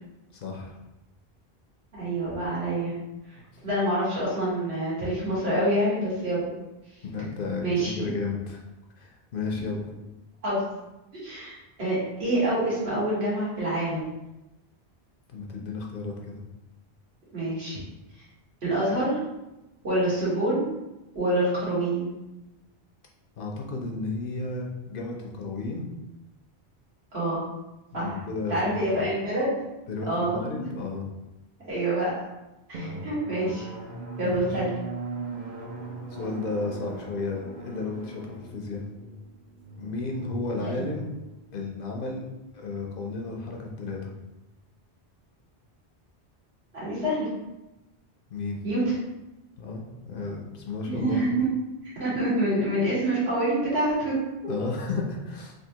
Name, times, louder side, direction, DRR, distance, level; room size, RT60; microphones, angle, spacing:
voice 1, 0.3-0.8 7.0-8.6 9.0-9.9 15.3-16.4 23.4-25.9 27.9-29.0 29.9-31.1 34.2-34.6 36.1-38.8 39.8-41.0 41.5-42.2 42.5-44.1 48.3-48.6 49.6-51.2 54.5-55.5, left 3 dB, 65° left, 0 dB, 0.7 m, -33 dB
voice 2, 1.9-2.9 3.6-6.5 7.6-8.1 10.4-10.6 11.2-14.1 17.3-17.8 18.6-19.2 19.8-20.6 21.1-22.1 27.1-27.4 27.9-28.1 28.5-29.5 30.1-30.7 31.6-32.1 32.7-33.6 34.2-34.7 40.6-40.8 46.7-47.3 48.6-48.9 50.9-51.5 52.0-54.1 54.4-54.5, right 1 dB, 80° right, -8 dB, 1.7 m, -26 dB
Drum, 32.7-42.0, right 3 dB, 55° right, 0.6 m, -40 dB
3.4 x 2.5 x 2.8 m, 0.97 s
omnidirectional pair, 1.1 m